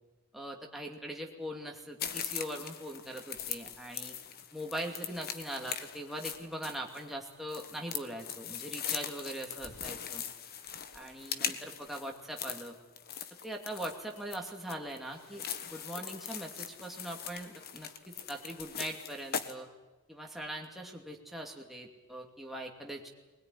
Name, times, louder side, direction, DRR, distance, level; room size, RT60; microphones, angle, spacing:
voice 1, 0.3-4.1 4.5-10.2 10.9-12.8 13.4-19.7 20.1-23.1, right 1 dB, ahead, 0 dB, 2.6 m, -41 dB
sound 1, 2.0-19.5, left 8 dB, 45° left, 1.3 m, -41 dB
20.5 x 20.5 x 9.8 m, 1.2 s
head